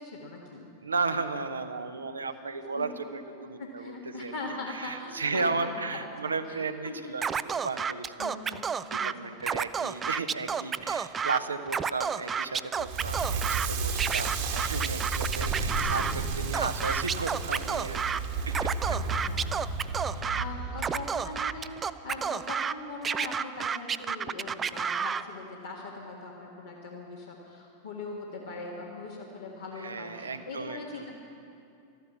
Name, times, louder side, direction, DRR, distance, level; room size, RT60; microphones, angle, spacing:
voice 1, 0.0-0.7 2.7-2.9 3.6-6.0 6.5-7.1 8.2-8.6 9.0-9.4 18.9-19.5 20.0-31.1, left 3 dB, 70° left, -4 dB, 1.6 m, -41 dB
voice 2, 0.8-4.3 4.7-8.4 8.9-19.0 20.1-20.4 29.8-31.1, right 4 dB, 75° right, 8 dB, 0.8 m, -34 dB
Scratching (performance technique), 7.2-9.1 9.4-11.4 11.7-13.7 14.0-16.1 16.5-18.2 18.5-20.4 20.8-22.7 23.0-25.2, right 6 dB, 20° right, 0.4 m, -30 dB
Crackle, 12.8-21.8, right 4 dB, 45° right, 1.4 m, -32 dB
13.0 x 11.5 x 7.2 m, 2.6 s
figure-of-eight pair, 90°, 0 cm